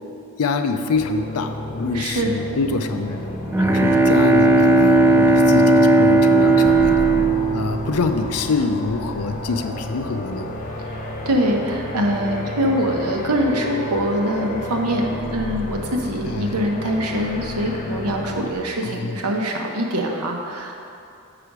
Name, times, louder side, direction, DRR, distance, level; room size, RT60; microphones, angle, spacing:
voice 1, 0.4-3.3 3.6-6.9 7.5-10.5 16.3-16.5 18.8-19.1, left 4 dB, 70° left, 7 dB, 0.5 m, -25 dB
sound 1, 0.9-18.5, left 1 dB, 40° left, 0.8 m, -31 dB
voice 2, 1.9-2.3 10.9-20.7, equal, 80° right, 1 dB, 1.0 m, -23 dB
Bowed string instrument, 3.2-8.7, right 2 dB, 10° right, 0.4 m, -16 dB
6.8 x 5.0 x 6.0 m, 2.5 s
head